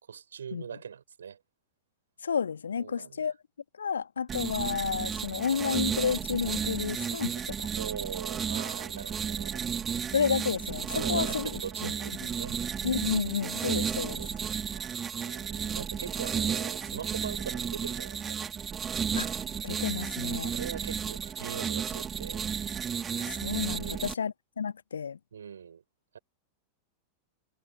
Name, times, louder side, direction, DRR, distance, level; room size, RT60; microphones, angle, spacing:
voice 1, 0.0-1.4 2.8-3.3 7.7-9.7 10.9-12.6 14.2-18.4 20.5-22.5 23.7-24.1 25.3-25.8 26.1-26.2, right 7 dB, 70° right, 6.8 m, -42 dB
voice 2, 2.2-3.3 3.8-7.7 10.1-11.9 12.2-12.3 12.8-14.2 19.2-19.3 19.6-20.5 23.2-25.2, left 6 dB, 70° left, 1.8 m, -31 dB
sound 1, 4.3-24.1, right 7 dB, 20° right, 2.8 m, -33 dB
figure-of-eight pair, 90°, 0 cm